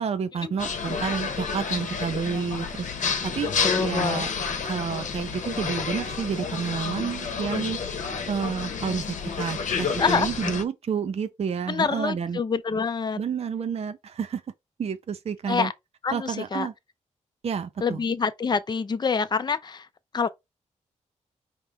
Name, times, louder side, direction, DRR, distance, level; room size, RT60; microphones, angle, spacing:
voice 1, 0.0-2.9 3.2-4.3 4.6-7.8 8.3-12.4 13.2-14.4 14.8-15.7 16.1-16.7 17.4-18.0, right 6 dB, 55° right, 0.5 m, -30 dB
sound 1, 0.6-10.6, left 5 dB, 75° left, 0.9 m, -30 dB
voice 2, 3.6-4.2 10.0-10.3 11.7-13.2 15.5-15.7 16.0-16.7 17.8-19.9 20.1-20.3, left 5 dB, 35° left, 0.5 m, -26 dB
5.1 x 3.0 x 3.4 m
wide cardioid pair, 95°, 13 cm